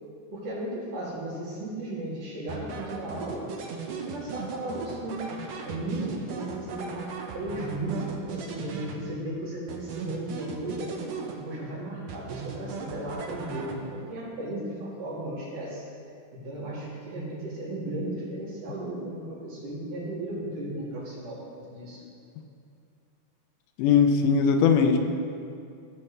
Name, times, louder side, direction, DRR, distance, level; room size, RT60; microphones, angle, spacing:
voice 1, 0.3-3.4 3.9-5.2 5.6-7.1 7.3-10.9 11.3-15.8 16.4-21.4 21.7-22.0, right 1 dB, 85° right, -8 dB, 4.4 m, -35 dB
sound 1, 2.5-9.3 9.7-11.7 12.1-14.1, right 5 dB, 70° right, 1.6 m, -38 dB
voice 2, 23.8-25.0, left 6 dB, 85° left, 5 dB, 2.3 m, -20 dB
17.0 x 5.8 x 3.3 m, 2.4 s
omnidirectional pair, 3.6 m